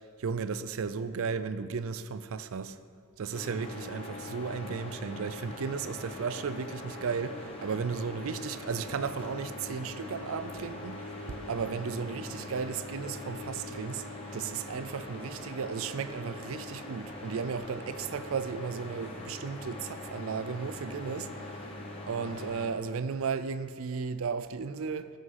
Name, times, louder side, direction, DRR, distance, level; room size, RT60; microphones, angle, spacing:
voice 1, 0.2-2.8 3.2-11.0 11.3-14.0 14.3-21.3 22.1-25.1, right 5 dB, 65° right, 0.4 m, -34 dB
sound 1, 3.3-22.7, left 2 dB, 25° left, 1.4 m, -42 dB
12.5 x 6.1 x 5.7 m
head